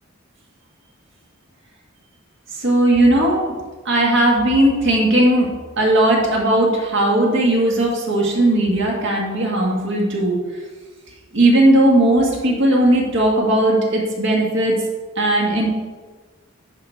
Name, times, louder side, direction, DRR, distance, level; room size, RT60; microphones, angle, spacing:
voice 1, 2.6-3.4 3.9-5.5 5.8-10.4 11.3-14.8 15.2-15.7, right 1 dB, 65° right, -1 dB, 1.8 m, -17 dB
10.5 x 4.3 x 4.5 m, 1.3 s
head